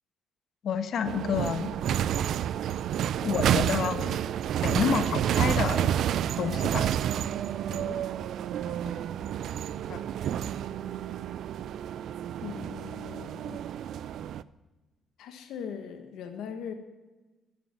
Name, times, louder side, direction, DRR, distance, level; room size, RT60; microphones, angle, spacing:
voice 1, 0.6-1.7 3.2-4.2 4.6-5.9 6.4-6.9 9.9-10.0, left 7 dB, 65° left, 9 dB, 1.2 m, -29 dB
sound 1, 1.0-14.4, right 10 dB, 75° right, 0.4 m, -29 dB
voice 2, 7.7-8.1 8.6-9.1 12.4-13.6 15.2-16.7, left 7 dB, 85° left, 6 dB, 1.3 m, -41 dB
12.0 x 8.4 x 7.1 m, 1.2 s
cardioid pair, 90°, 0 cm